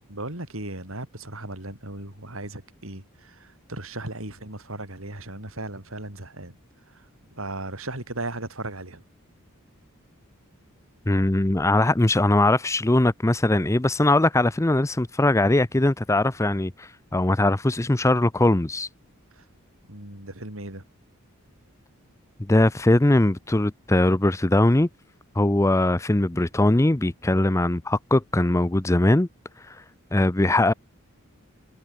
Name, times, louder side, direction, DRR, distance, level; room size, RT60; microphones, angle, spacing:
voice 1, 0.1-6.6 6.9-7.1 7.4-9.0 19.3-19.5 19.9-20.8, right 2 dB, 70° right, 5.6 m, -36 dB
voice 2, 11.1-18.9 22.5-24.9 25.4-29.3 29.7-29.8 30.1-30.7, left 1 dB, 15° left, 0.6 m, -21 dB
head